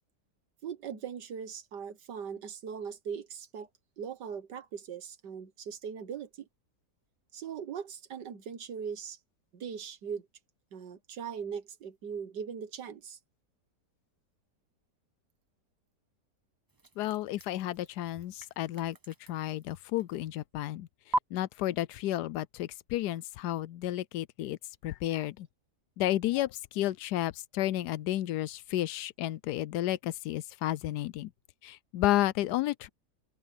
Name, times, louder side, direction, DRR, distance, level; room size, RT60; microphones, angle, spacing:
voice 1, 0.6-3.7 4.0-6.5 7.3-9.2 9.5-10.3 10.7-13.2, right 7 dB, 90° right, 1.9 m, -40 dB
sound 1, 16.7-20.5 21.1-21.2, right 1 dB, 20° right, 0.6 m, -39 dB
voice 2, 17.0-20.9 21.3-24.6 24.8-25.5 26.0-31.3 31.6-32.9, left 14 dB, 80° left, 1.1 m, -32 dB
open air
omnidirectional pair, 1.8 m